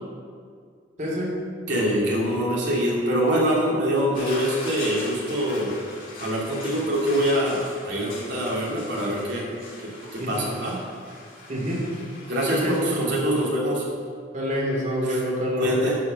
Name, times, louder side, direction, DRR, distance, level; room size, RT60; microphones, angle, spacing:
voice 1, 1.0-1.3 10.2-10.3 11.5-11.8 12.5-13.0 14.3-15.8, equal, 40° right, -4 dB, 2.7 m, -26 dB
voice 2, 1.7-5.7 6.2-9.5 10.1-10.8 12.3-13.9 15.0-15.2 15.6-16.0, equal, 70° right, -5 dB, 2.7 m, -24 dB
sound 1, 4.1-12.8, left 2 dB, 55° left, 2.4 m, -40 dB
11.0 x 4.7 x 6.9 m, 2.1 s
head